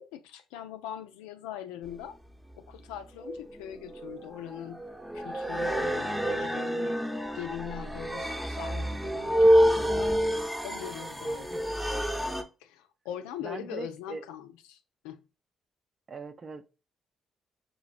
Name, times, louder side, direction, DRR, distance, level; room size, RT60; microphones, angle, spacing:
voice 1, 0.0-2.1 2.6-4.8 5.1-7.0 7.3-10.2 10.6-11.7 12.6-14.8 15.0-15.2, left 10 dB, 90° left, 0.3 m, -41 dB
sound 1, 1.9-2.0 3.2-12.4, equal, 5° right, 0.8 m, -28 dB
voice 2, 13.4-14.2 16.1-16.7, right 3 dB, 45° right, 0.6 m, -40 dB
6.1 x 2.8 x 2.4 m
supercardioid pair, 55°, 0 cm